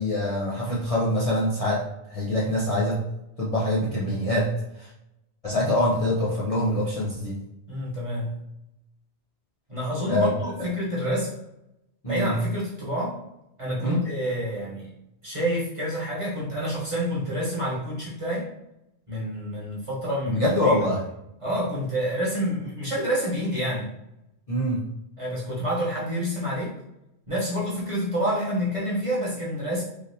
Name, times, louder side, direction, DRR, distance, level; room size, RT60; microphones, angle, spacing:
voice 1, 0.0-1.8 2.1-3.0 3.4-4.5 4.8-4.9 5.4-7.4 10.1-10.3 12.0-12.3 13.8-14.0 20.3-21.0 24.5-24.8, left 1 dB, 40° left, -7 dB, 0.6 m, -24 dB
voice 2, 7.7-8.3 9.7-11.3 12.0-13.2 13.6-14.9 15.2-18.5 19.1-20.7 21.4-23.9 25.2-26.7 27.3-29.8, equal, 30° right, -7 dB, 1.0 m, -28 dB
3.3 x 2.6 x 2.7 m, 0.84 s
omnidirectional pair, 1.1 m